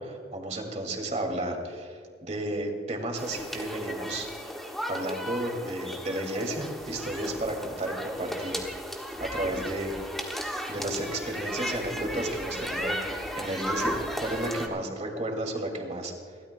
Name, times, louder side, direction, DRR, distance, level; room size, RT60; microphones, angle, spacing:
voice 1, 0.0-4.3 4.9-8.6 9.2-10.0 10.7-16.1, right 1 dB, 40° right, 3 dB, 2.2 m, -33 dB
sound 1, 3.2-14.7, equal, ahead, 1.3 m, -35 dB
29.5 x 13.0 x 2.2 m, 2.2 s
head